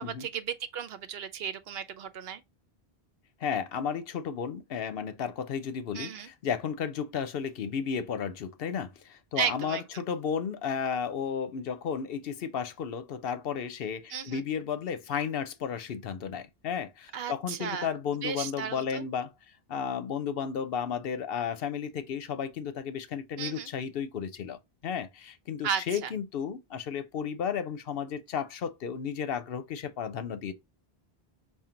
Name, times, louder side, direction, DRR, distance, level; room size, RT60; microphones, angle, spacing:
voice 1, 0.0-2.4 5.9-6.3 9.4-9.8 14.1-14.4 17.1-18.0 18.2-19.0 23.4-23.7 25.6-26.1, right 7 dB, 75° right, 0.9 m, -34 dB
voice 2, 3.4-19.3 19.7-30.5, left 7 dB, 70° left, 0.8 m, -33 dB
5.8 x 2.4 x 3.7 m
omnidirectional pair, 1.0 m